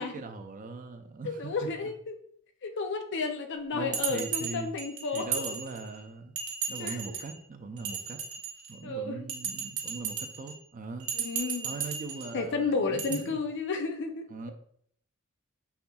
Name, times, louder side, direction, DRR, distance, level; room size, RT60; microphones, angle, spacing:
voice 1, 0.0-1.9 3.7-4.7 5.1-6.3 6.7-8.2 8.7-11.1 11.6-13.4 14.3-14.5, right 3 dB, 40° right, 6 dB, 0.5 m, -40 dB
voice 2, 1.2-2.1 2.6-5.4 6.8-7.2 8.8-9.3 11.1-11.7 12.3-14.3, left 4 dB, 55° left, 6 dB, 0.5 m, -32 dB
Bell, 3.9-6.0 6.4-7.3 7.8-8.8 9.3-10.5 11.0-12.3 13.0-13.2, right 7 dB, 70° right, 1.0 m, -35 dB
5.6 x 3.4 x 2.3 m, 0.64 s
head